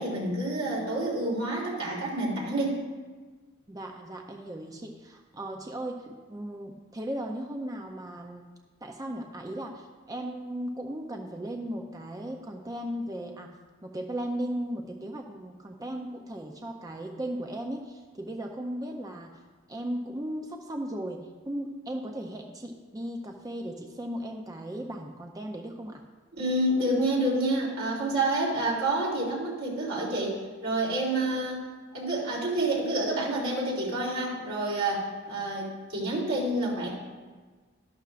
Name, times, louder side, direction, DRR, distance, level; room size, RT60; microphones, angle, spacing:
voice 1, 0.0-2.8 26.4-31.6 31.9-36.9, right 1 dB, 85° right, -4 dB, 3.2 m, -28 dB
voice 2, 3.7-8.5 8.8-13.5 13.8-19.4 19.7-26.0, right 1 dB, 15° right, 2 dB, 0.5 m, -36 dB
12.5 x 11.5 x 2.5 m, 1.4 s
head